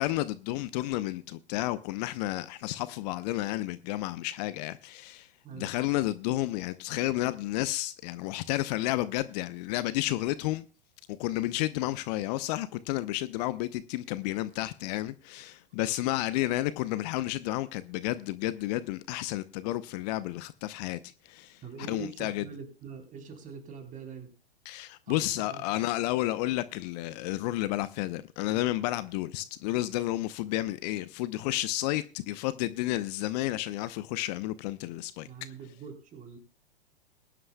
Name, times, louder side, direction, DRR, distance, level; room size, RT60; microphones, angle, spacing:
voice 1, 0.0-5.3 5.6-10.6 11.2-21.0 21.2-21.6 21.9-22.4 24.7-35.3, left 16 dB, 45° left, 0.8 m, -31 dB
voice 2, 21.6-24.3 25.1-25.6 35.2-36.4, right 6 dB, 25° right, 3.8 m, -44 dB
21.0 x 11.0 x 2.3 m
figure-of-eight pair, 100°, 30 cm